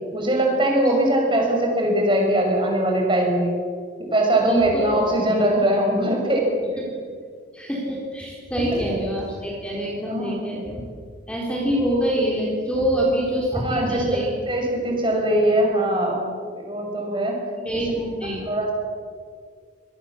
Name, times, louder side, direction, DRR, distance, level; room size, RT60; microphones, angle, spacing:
voice 1, 0.1-3.5 4.1-6.5 10.1-10.3 13.5-14.2 14.5-16.2 16.5-17.4 18.5-18.7, right 1 dB, 25° right, 0 dB, 6.1 m, -21 dB
voice 2, 4.5-4.9 6.8-6.9 7.5-10.8 11.3-14.3 17.6-18.5, equal, 5° left, -3 dB, 4.0 m, -25 dB
26.5 x 20.0 x 7.3 m, 2.1 s
head